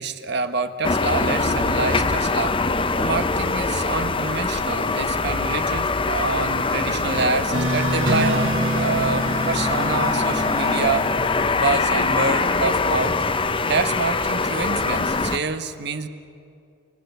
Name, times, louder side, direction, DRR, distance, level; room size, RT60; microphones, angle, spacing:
voice 1, 0.0-2.6 3.0-11.1 11.6-13.2 13.7-16.1, right 4 dB, 60° right, 9 dB, 1.3 m, -26 dB
sound 1, 0.8-15.4, left 3 dB, 25° left, 0.8 m, -23 dB
sound 2, 7.5-11.8, equal, 85° right, 5.3 m, -26 dB
28.5 x 24.5 x 8.1 m, 2.5 s
head